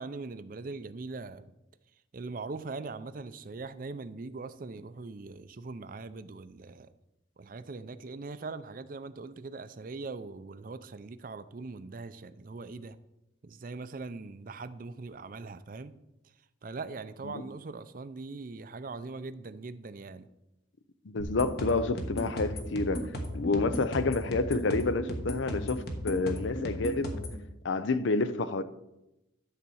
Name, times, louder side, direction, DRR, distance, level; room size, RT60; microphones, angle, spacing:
voice 1, 0.0-1.5 2.1-6.9 7.4-13.0 13.4-16.0 16.6-20.3, right 3 dB, 45° right, 0.5 m, -41 dB
voice 2, 21.0-23.1 23.3-27.1 27.6-28.6, left 3 dB, 75° left, 0.6 m, -29 dB
sound 1, 21.2-27.4, equal, 55° left, 1.4 m, -36 dB
12.0 x 4.1 x 7.1 m
head